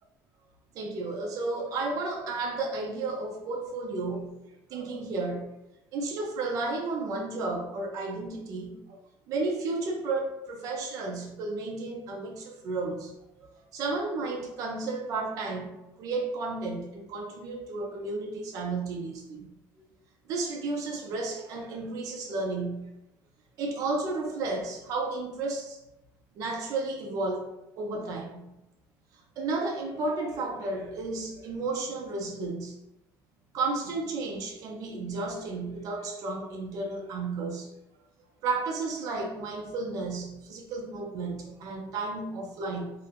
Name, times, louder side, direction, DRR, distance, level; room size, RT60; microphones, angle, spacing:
voice 1, 0.7-4.3 4.7-5.5 5.9-9.0 9.3-13.1 13.7-19.5 20.3-22.9 23.6-25.8 26.4-27.5 27.8-28.5 29.4-32.8 33.5-37.7 38.4-42.9, right 3 dB, 50° right, 1 dB, 0.5 m, -32 dB
2.6 x 2.1 x 2.9 m, 0.90 s
cardioid pair, 165°, 7 cm